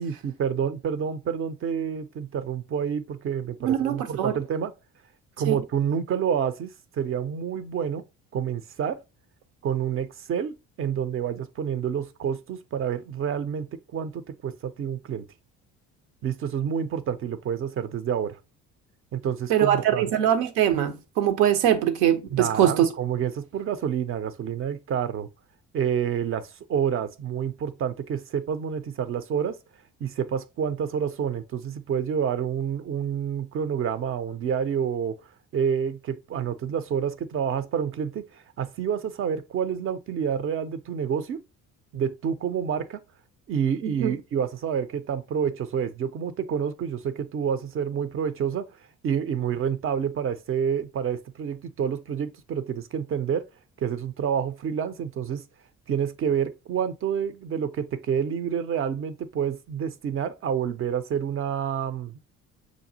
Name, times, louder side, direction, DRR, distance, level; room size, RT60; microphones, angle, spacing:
voice 1, 0.0-4.7 5.4-8.0 8.3-9.0 9.6-15.2 16.2-18.4 19.1-20.0 22.3-25.3 25.7-29.6 30.0-35.2 35.5-41.4 41.9-43.0 43.5-48.7 49.0-53.5 53.8-55.4 55.9-62.2, right 8 dB, 35° right, 0.5 m, -28 dB
voice 2, 3.6-4.3 5.5-5.6 19.5-22.9 43.8-44.2, right 10 dB, 70° right, 0.7 m, -22 dB
5.9 x 2.3 x 2.6 m
hypercardioid pair, 55°, 39 cm